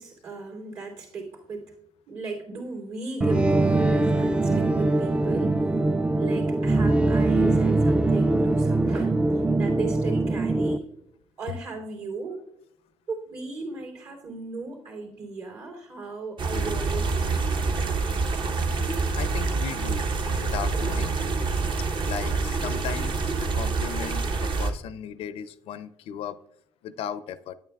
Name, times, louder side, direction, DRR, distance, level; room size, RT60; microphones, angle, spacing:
voice 1, 0.0-1.7 2.1-5.8 6.2-10.8 11.4-12.4 13.1-17.7, right 4 dB, 70° right, 1 dB, 3.0 m, -36 dB
sound 1, 3.2-10.8, right 2 dB, 10° right, 0.3 m, -22 dB
sound 2, 16.4-24.7, right 4 dB, 50° right, 0.9 m, -26 dB
voice 2, 19.2-20.0 20.4-21.2 22.1-26.4 26.8-27.5, left 8 dB, 70° left, 15 dB, 0.4 m, -36 dB
9.0 x 8.9 x 2.3 m, 0.79 s
supercardioid pair, 80°, 10 cm